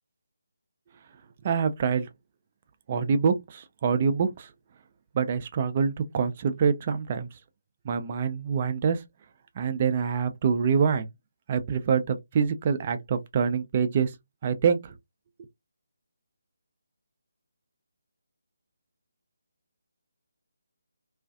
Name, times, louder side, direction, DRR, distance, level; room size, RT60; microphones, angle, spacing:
voice 1, 1.4-2.1 2.9-4.5 5.1-7.3 7.8-9.0 9.6-11.1 11.5-14.1 14.4-14.9, right 6 dB, 30° right, 0.4 m, -25 dB
2.4 x 2.3 x 2.4 m
figure-of-eight pair, 150°, 0 cm